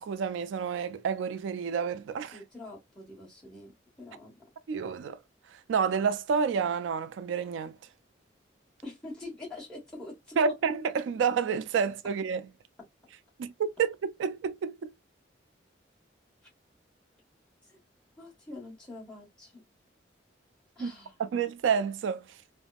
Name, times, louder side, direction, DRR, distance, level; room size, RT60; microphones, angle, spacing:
voice 1, 0.0-2.4 4.7-5.2 5.5-7.8 10.4-12.4 13.4-14.9 20.8-20.9 21.2-22.4, right 6 dB, 85° right, 0.3 m, -29 dB
voice 2, 2.3-4.4 8.8-10.5 17.6-17.8 18.2-19.6 20.7-21.2, left 2 dB, 5° left, 1.2 m, -45 dB
3.4 x 2.0 x 2.2 m
head